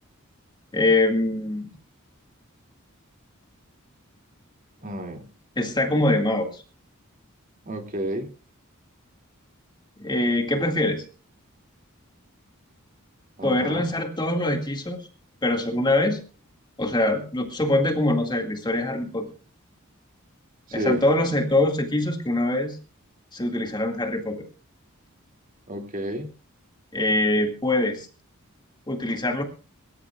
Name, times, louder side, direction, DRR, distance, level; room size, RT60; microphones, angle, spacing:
voice 1, 0.7-1.7 5.6-6.6 10.0-11.0 13.4-15.0 15.4-16.2 16.8-19.3 20.7-22.8 23.3-24.5 26.9-28.1 28.9-29.4, left 1 dB, 20° left, 4 dB, 2.1 m, -23 dB
voice 2, 4.8-5.3 7.6-8.3 13.4-13.8 20.7-21.1 25.7-26.3, equal, 40° right, 4 dB, 2.5 m, -31 dB
24.0 x 14.5 x 2.4 m, 0.35 s
head